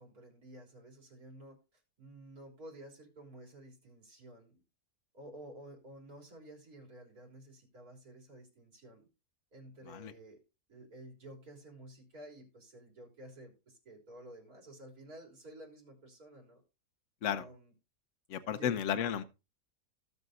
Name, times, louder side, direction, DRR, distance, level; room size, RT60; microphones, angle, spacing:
voice 1, 0.0-4.6 5.1-9.1 9.5-10.4 10.7-16.6 17.3-17.7 18.5-18.8, right 1 dB, 65° right, 4.0 m, -52 dB
voice 2, 18.3-19.2, left 9 dB, 55° left, 1.1 m, -33 dB
17.0 x 6.9 x 2.5 m
omnidirectional pair, 1.7 m